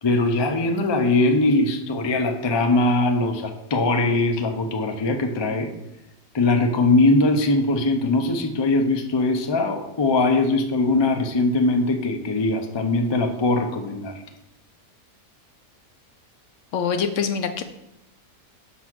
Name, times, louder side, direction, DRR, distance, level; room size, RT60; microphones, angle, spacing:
voice 1, 0.0-5.7 6.3-14.1, left 2 dB, 40° left, 4 dB, 0.3 m, -21 dB
voice 2, 16.7-17.6, left 6 dB, 65° left, 8 dB, 0.8 m, -24 dB
5.9 x 4.1 x 6.0 m, 0.87 s
omnidirectional pair, 1.5 m